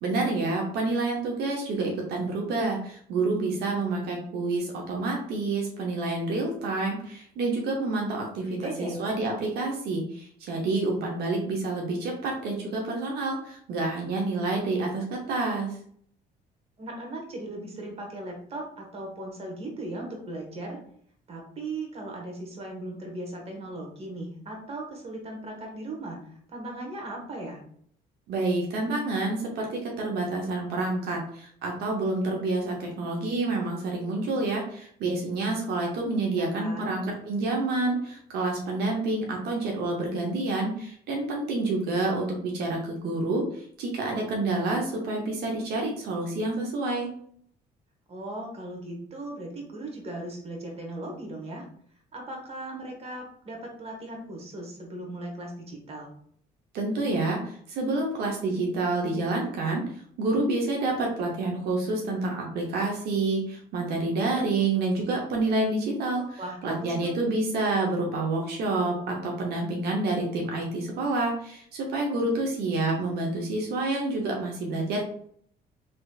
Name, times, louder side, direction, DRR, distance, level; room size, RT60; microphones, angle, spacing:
voice 1, 0.0-15.8 28.3-47.1 56.7-59.8 60.2-75.0, right 2 dB, 75° right, 0 dB, 0.8 m, -28 dB
voice 2, 8.4-9.0 16.8-20.8 21.3-27.6 36.3-37.0 48.1-51.7 52.1-56.1 66.4-67.1, right 2 dB, 35° right, 1 dB, 1.1 m, -38 dB
3.3 x 2.9 x 2.3 m, 0.62 s
cardioid pair, 110°, 17 cm